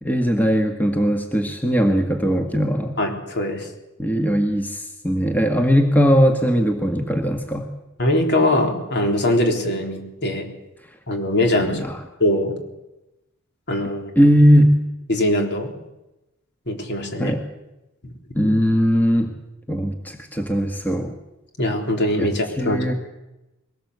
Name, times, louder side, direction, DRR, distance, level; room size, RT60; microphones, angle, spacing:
voice 1, 0.0-3.0 4.0-7.7 11.5-12.0 14.1-14.8 17.2-17.4 18.3-19.3 19.7-21.1 22.2-22.3 22.6-22.9, equal, 10° left, 4 dB, 1.6 m, -19 dB
voice 2, 3.0-3.7 8.0-10.5 11.1-11.8 12.2-12.6 13.7-14.1 15.1-15.7 16.7-17.3 21.6-22.8, left 1 dB, 50° left, 4 dB, 3.7 m, -21 dB
22.0 x 18.5 x 8.1 m, 0.96 s
head